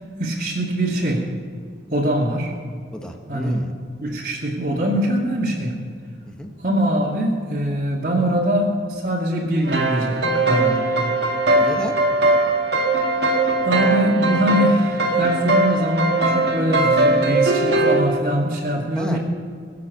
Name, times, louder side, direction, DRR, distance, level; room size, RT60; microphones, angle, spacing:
voice 1, 0.2-1.2 1.9-2.5 3.3-3.6 4.0-5.7 6.6-10.9 13.6-19.2, equal, 45° right, -7 dB, 2.4 m, -22 dB
voice 2, 2.9-3.7 6.3-6.5 11.6-12.0 18.9-19.2, equal, 5° left, 3 dB, 1.3 m, -31 dB
sound 1, 9.6-18.0, right 2 dB, 70° right, 2.0 m, -20 dB
21.5 x 7.5 x 6.7 m, 2.1 s
head